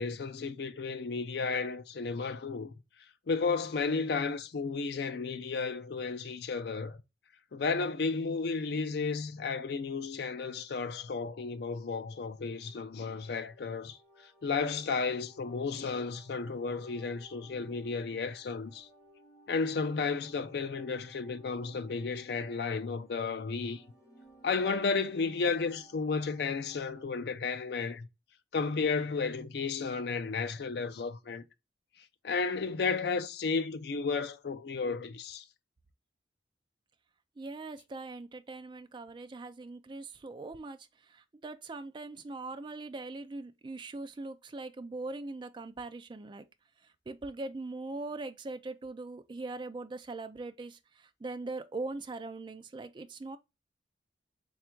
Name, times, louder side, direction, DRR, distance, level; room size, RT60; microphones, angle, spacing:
voice 1, 0.0-2.7 3.3-7.0 7.5-18.9 19.5-23.8 24.4-28.1 28.5-31.4 32.2-35.4, left 4 dB, 60° left, 0.4 m, -33 dB
sound 1, 11.7-27.0, right 1 dB, 20° left, 1.0 m, -60 dB
voice 2, 37.4-46.5 46.8-53.4, right 3 dB, 25° right, 0.3 m, -41 dB
3.4 x 2.4 x 4.3 m
head